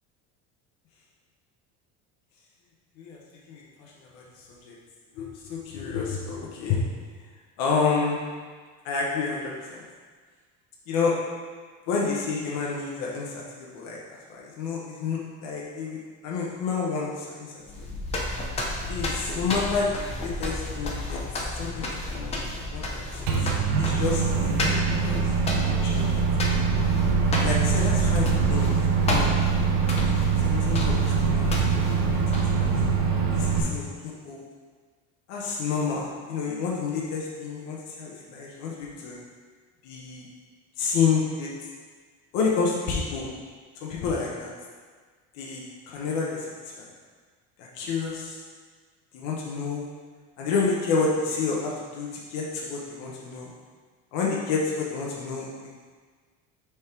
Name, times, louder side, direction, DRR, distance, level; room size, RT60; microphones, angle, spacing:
voice 1, 3.5-4.2 4.6-4.7 5.1-6.8 7.6-8.2 8.8-9.8 10.9-11.1 11.9-14.0 14.3-17.8 18.9-21.2 21.6-23.0 23.4-23.5 23.8-25.1 25.6-26.2 27.4-28.8 29.1-29.4 30.0-30.2 30.4-32.2 32.6-32.7 33.3-33.9 34.2-34.4 35.3-39.2 39.8-40.3 40.8-41.5 42.3-43.3 43.8-44.5 45.3-46.5 46.8-46.9 47.6-48.4 49.1-49.9 50.4-53.5 54.1-55.5, left 5 dB, 60° left, -4 dB, 1.0 m, -29 dB
sound 1, 17.6-32.8, left 1 dB, 20° left, 0.5 m, -31 dB
Microwave oven, 23.3-33.6, right 5 dB, 85° right, 1.2 m, -23 dB
6.2 x 3.6 x 4.6 m, 1.5 s
cardioid pair, 175°, 33 cm